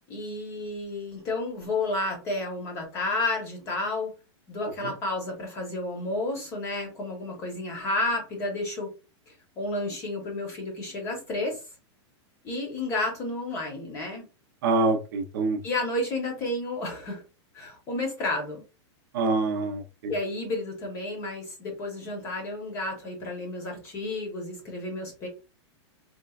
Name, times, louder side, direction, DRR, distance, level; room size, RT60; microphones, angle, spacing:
voice 1, 0.1-4.1 4.5-8.9 9.3-11.6 12.4-14.3 15.6-17.2 17.5-18.6 20.1-25.3, left 2 dB, 20° left, 0.9 m, -31 dB
voice 2, 14.6-15.6 19.1-20.1, right 3 dB, 45° right, 0.6 m, -25 dB
4.3 x 2.2 x 2.3 m
supercardioid pair, 180°, 15 cm